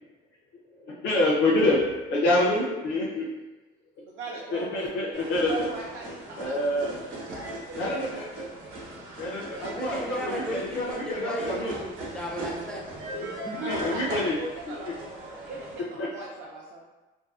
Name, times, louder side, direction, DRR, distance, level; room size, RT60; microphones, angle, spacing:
voice 1, 0.8-3.3 4.5-5.7 6.4-7.1 7.8-8.5 9.2-11.7 13.6-14.3 16.0-16.1, left 1 dB, 65° left, -5 dB, 0.5 m, -27 dB
voice 2, 4.0-8.2 13.6-14.9 15.4-16.8, right 2 dB, 65° right, -3 dB, 0.4 m, -40 dB
sound 1, 5.1-15.8, right 1 dB, 90° right, 0.8 m, -38 dB
voice 3, 9.7-12.9, equal, 5° left, -2 dB, 0.3 m, -35 dB
2.6 x 2.2 x 2.3 m, 1.1 s
cardioid pair, 145°, 21 cm